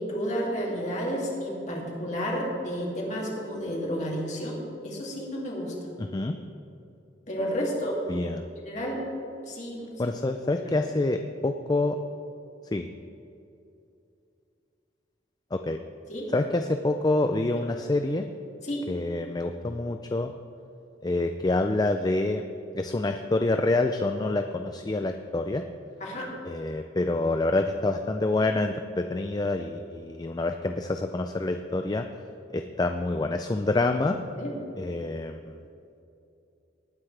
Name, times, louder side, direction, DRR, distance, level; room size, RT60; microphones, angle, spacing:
voice 1, 0.0-4.6 4.8-5.7 7.3-8.0 8.6-9.1 9.5-10.1 10.4-10.7 16.1-16.3 18.6-18.9 26.0-26.3 34.4-34.5, equal, 40° left, -3 dB, 2.6 m, -31 dB
voice 2, 6.0-6.4 8.1-8.4 10.0-12.0 12.7-12.9 15.5-15.8 16.3-18.3 18.9-20.3 21.0-22.4 22.7-25.6 26.5-32.1 32.5-34.2 34.8-35.6, left 2 dB, 20° left, 6 dB, 0.4 m, -27 dB
19.0 x 9.5 x 3.3 m, 2.7 s
head